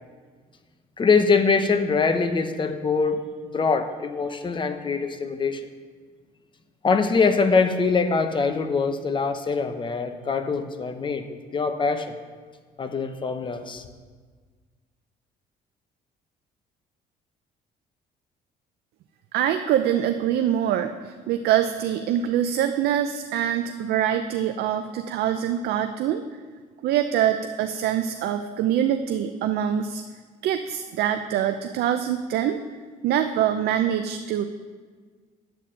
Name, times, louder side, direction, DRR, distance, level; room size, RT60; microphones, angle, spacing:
voice 1, 1.0-5.6 6.8-12.1 12.8-13.9, left 4 dB, 30° left, 7 dB, 0.9 m, -23 dB
voice 2, 19.3-26.2 26.8-30.0 30.4-32.6 33.0-34.5, right 10 dB, 70° right, 8 dB, 0.5 m, -24 dB
10.5 x 4.2 x 7.6 m, 1.5 s
cardioid pair, 110°, 17 cm